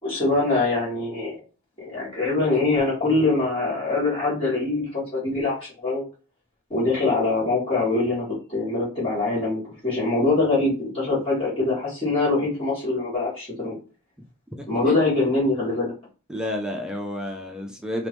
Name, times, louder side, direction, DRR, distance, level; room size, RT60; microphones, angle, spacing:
voice 1, 0.0-1.4 1.8-6.0 6.7-13.8 14.7-15.9, left 3 dB, 25° left, -9 dB, 1.9 m, -23 dB
voice 2, 14.6-15.0 16.3-18.1, left 1 dB, 5° right, 1 dB, 0.4 m, -31 dB
3.5 x 2.9 x 3.0 m, 0.35 s
head